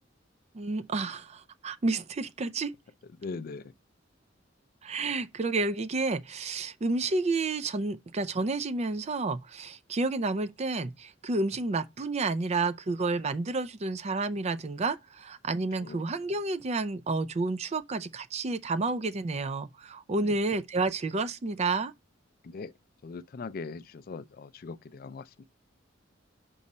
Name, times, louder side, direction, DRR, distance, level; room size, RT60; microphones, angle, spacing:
voice 1, 0.5-2.7 4.8-21.9, right 3 dB, 35° right, 0.4 m, -30 dB
voice 2, 3.2-3.6 15.8-16.0 20.2-20.4 22.4-22.7 23.0-25.4, left 4 dB, 50° left, 0.4 m, -40 dB
5.4 x 4.8 x 4.1 m
head